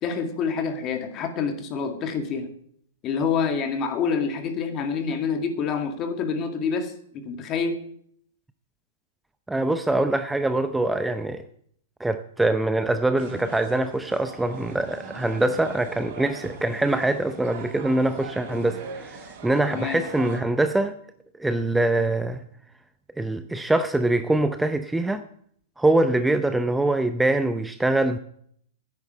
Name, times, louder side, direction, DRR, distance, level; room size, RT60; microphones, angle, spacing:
voice 1, 0.0-2.5 3.0-7.8 19.7-20.0, left 5 dB, 35° left, 2.0 m, -27 dB
voice 2, 9.5-11.4 12.0-20.9 21.4-22.4 23.2-25.2 25.8-28.2, right 2 dB, 5° right, 0.6 m, -24 dB
sound 1, 13.2-20.4, right 4 dB, 55° right, 3.9 m, -40 dB
9.9 x 9.7 x 6.6 m
hypercardioid pair, 115°, 0 cm